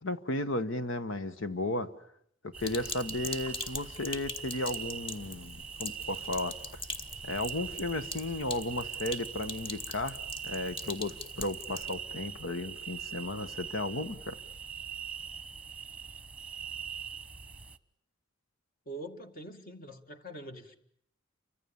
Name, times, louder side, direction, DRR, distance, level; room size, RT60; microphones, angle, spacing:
voice 1, 0.0-1.9 2.4-6.6 7.2-14.4, left 2 dB, 80° left, 1.5 m, -34 dB
sound 1, 2.5-17.8, right 7 dB, 5° right, 1.1 m, -42 dB
Sink (filling or washing), 2.6-11.9, left 2 dB, 25° left, 2.2 m, -42 dB
voice 2, 18.9-20.8, right 1 dB, 45° left, 2.2 m, -44 dB
30.0 x 25.5 x 7.2 m
head